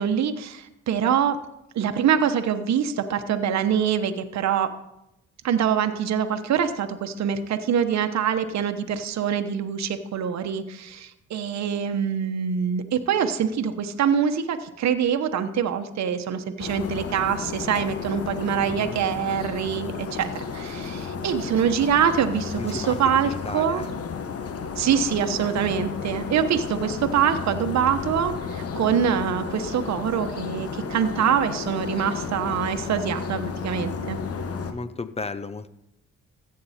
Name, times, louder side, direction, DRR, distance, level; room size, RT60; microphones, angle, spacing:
voice 1, 0.0-1.4 1.7-4.7 5.4-23.8 24.8-34.2, right 8 dB, 65° right, 8 dB, 1.0 m, -24 dB
sound 1, 16.6-34.7, left 5 dB, 50° left, 1.2 m, -33 dB
voice 2, 18.6-19.0 22.6-23.0 23.2-23.9 34.7-35.7, left 3 dB, 20° left, 13 dB, 0.7 m, -34 dB
14.5 x 8.5 x 4.3 m, 0.86 s
cardioid pair, 90°, 30 cm